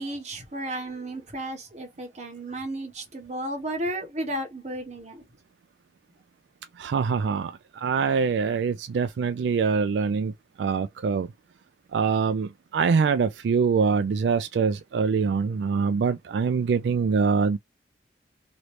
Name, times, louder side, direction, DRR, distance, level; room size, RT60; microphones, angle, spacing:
voice 1, 0.0-5.2, right 1 dB, 40° right, 1.1 m, -33 dB
voice 2, 6.8-10.3 10.6-11.3 11.9-17.6, right 5 dB, 85° right, 0.3 m, -24 dB
3.0 x 2.7 x 3.1 m
head